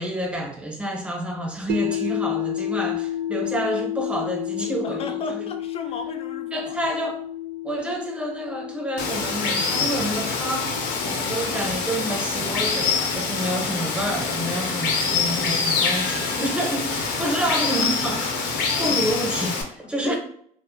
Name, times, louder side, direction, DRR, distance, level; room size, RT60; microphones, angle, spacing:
voice 1, 0.0-5.4 6.5-7.2 7.6-10.8 11.0-20.2, right 1 dB, 5° right, 0.6 m, -29 dB
sound 1, 1.7-13.8, left 10 dB, 85° right, 0.4 m, -32 dB
voice 2, 4.8-6.8 18.9-19.0 20.0-20.2, left 4 dB, 35° left, 0.4 m, -34 dB
Water, 9.0-19.6, left 4 dB, 85° left, 0.6 m, -25 dB
2.5 x 2.3 x 2.5 m
cardioid pair, 110°, 17 cm